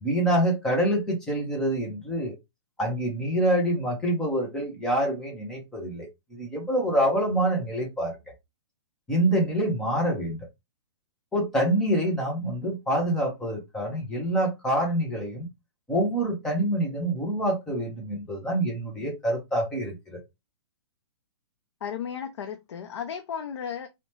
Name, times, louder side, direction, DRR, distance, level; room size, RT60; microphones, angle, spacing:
voice 1, 0.0-2.3 2.8-8.2 9.1-10.4 11.3-15.5 15.9-20.2, right 1 dB, 5° left, 0.4 m, -26 dB
voice 2, 21.8-23.9, left 8 dB, 75° left, 0.5 m, -34 dB
2.7 x 2.1 x 3.0 m
hypercardioid pair, 170°, 15 cm